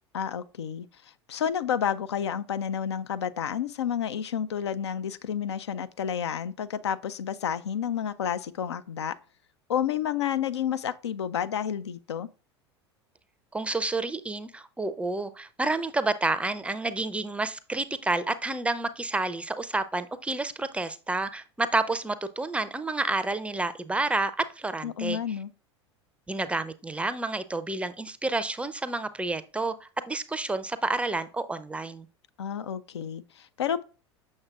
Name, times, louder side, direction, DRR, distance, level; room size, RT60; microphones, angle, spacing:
voice 1, 0.1-9.2 9.7-12.3 24.8-25.5 32.4-33.8, left 8 dB, 75° left, 0.4 m, -30 dB
voice 2, 13.5-24.3 24.6-25.2 26.3-32.1, right 2 dB, 10° right, 0.4 m, -29 dB
7.2 x 6.4 x 2.3 m
figure-of-eight pair, 80°, 14 cm